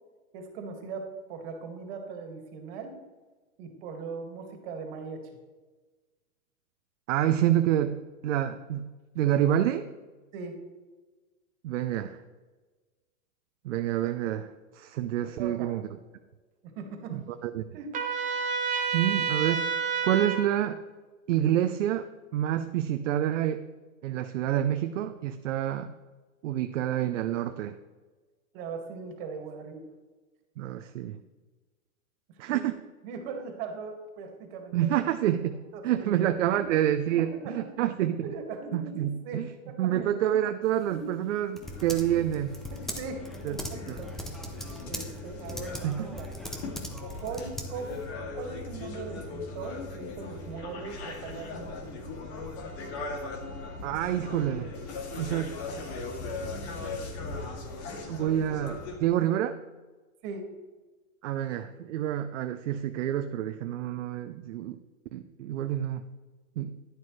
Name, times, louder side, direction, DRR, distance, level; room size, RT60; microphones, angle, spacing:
voice 1, 0.3-2.9 3.6-5.3 10.3-10.5 15.4-15.7 16.6-17.2 17.7-18.0 28.5-29.9 32.5-32.6 33.0-34.8 35.5-36.2 36.5-36.6 37.3-37.7 38.2-39.9 40.9-41.0 41.5-41.7 42.7-44.4 44.8-46.3 47.2-48.0 48.3-52.1 60.2-60.5, right 4 dB, 40° right, 4 dB, 2.1 m, -40 dB
voice 2, 7.1-8.9 9.1-9.9 11.6-12.2 13.6-15.9 17.1-17.6 18.9-19.7 20.0-20.8 21.3-23.6 24.0-25.9 26.4-27.8 30.6-31.2 32.4-32.7 34.7-35.6 35.8-38.3 38.7-39.5 39.8-42.6 43.4-43.6 43.9-44.0 45.8-46.2 53.8-54.7 55.1-55.6 58.1-59.6 61.2-64.8 65.1-66.0 66.6-66.7, right 11 dB, 60° right, 8 dB, 0.7 m, -28 dB
Trumpet, 17.9-20.4, right 6 dB, 20° right, 1.2 m, -29 dB
Typing, 40.6-48.1, equal, ahead, 0.6 m, -41 dB
sound 1, 41.6-59.0, left 3 dB, 50° left, 2.5 m, -39 dB
11.0 x 11.0 x 3.3 m, 1.3 s
hypercardioid pair, 140°, 42 cm